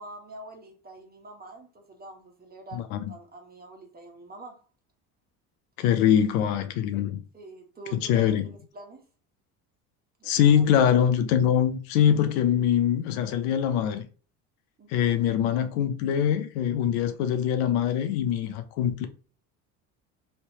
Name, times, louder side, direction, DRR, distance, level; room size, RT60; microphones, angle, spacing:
voice 1, 0.0-4.6 7.3-9.0 10.2-10.8 14.8-15.3, right 2 dB, 20° right, 1.2 m, -46 dB
voice 2, 5.8-7.2 7.9-8.5 10.2-14.1 14.9-19.1, left 9 dB, 75° left, 0.7 m, -23 dB
3.3 x 2.8 x 2.8 m
hypercardioid pair, 80°, 43 cm